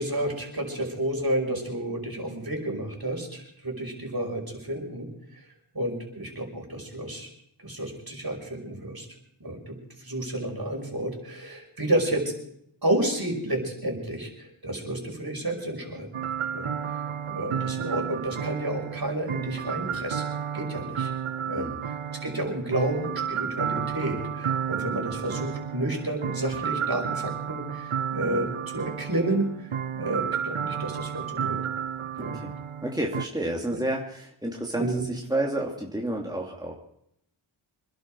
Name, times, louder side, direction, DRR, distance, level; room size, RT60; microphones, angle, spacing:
voice 1, 0.0-5.4 5.7-7.3 7.6-9.1 9.4-12.3 12.8-16.1 16.5-20.3 20.5-21.1 21.5-21.7 22.1-31.6 32.2-32.4 33.7-33.8 34.8-35.0, right 1 dB, 45° right, 1 dB, 5.7 m, -31 dB
sound 1, 16.1-33.3, right 8 dB, 80° right, 0.8 m, -32 dB
voice 2, 32.1-32.5 32.8-36.7, right 1 dB, 10° right, -1 dB, 2.9 m, -30 dB
25.5 x 11.5 x 4.8 m, 0.73 s
wide cardioid pair, 40°, 50 cm